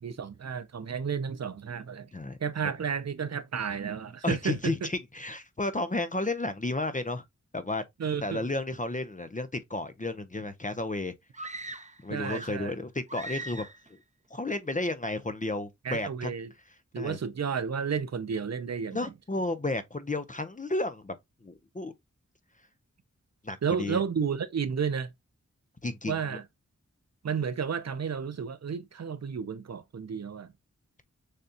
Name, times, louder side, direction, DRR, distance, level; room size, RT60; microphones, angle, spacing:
voice 1, 0.0-2.1 2.4-4.9 8.0-8.4 12.1-12.7 15.8-16.5 16.9-19.1 23.6-25.1 26.1-26.4 27.2-30.5, right 6 dB, 60° right, 0.5 m, -32 dB
voice 2, 4.2-7.2 7.5-7.8 8.2-11.1 12.0-13.6 14.3-16.3 17.0-17.2 18.9-21.1 21.4-21.9 23.4-24.0 25.8-26.4, left 2 dB, 25° left, 0.6 m, -32 dB
sound 1, 11.3-12.7 13.1-13.9, right 2 dB, 25° right, 0.7 m, -40 dB
6.5 x 2.3 x 2.7 m
wide cardioid pair, 50°, 30 cm